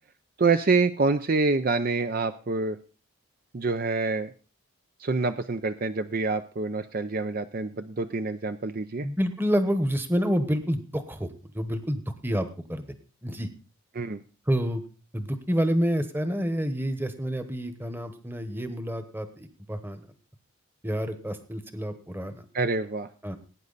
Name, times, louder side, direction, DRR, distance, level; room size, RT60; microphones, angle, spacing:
voice 1, 0.4-2.8 3.5-4.3 5.0-9.1 13.9-14.2 22.5-23.1, right 3 dB, 40° right, 9 dB, 0.5 m, -26 dB
voice 2, 9.0-12.8 13.2-13.5 14.5-14.8 15.1-20.0 20.8-22.4 23.2-23.4, equal, 10° right, 10 dB, 1.1 m, -28 dB
17.5 x 9.5 x 4.0 m, 0.36 s
head